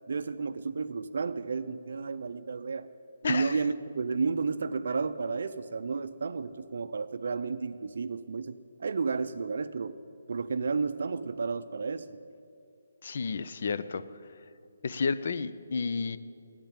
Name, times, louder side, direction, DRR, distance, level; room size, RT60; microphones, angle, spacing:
voice 1, 0.1-2.9 3.2-9.9 10.3-12.2, right 4 dB, 65° right, 12 dB, 0.4 m, -32 dB
voice 2, 3.2-3.6 13.0-14.0 14.8-16.2, left 5 dB, 55° left, 14 dB, 0.5 m, -31 dB
10.5 x 8.8 x 8.9 m, 2.6 s
hypercardioid pair, 170°, 0 cm